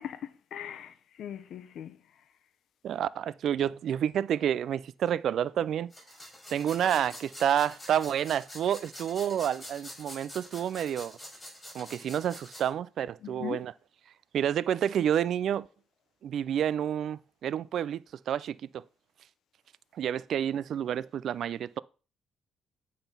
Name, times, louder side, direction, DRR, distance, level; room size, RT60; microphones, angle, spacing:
voice 1, 0.0-2.0 13.2-13.7, left 10 dB, 70° left, 0.7 m, -40 dB
voice 2, 2.8-5.9 6.5-11.2 11.7-13.7 14.3-15.7 16.2-18.8 19.9-21.8, right 9 dB, 70° right, 0.3 m, -29 dB
sound 1, 5.9-12.7, equal, 20° left, 5.1 m, -46 dB
9.0 x 3.9 x 5.4 m
cardioid pair, 90°, 0 cm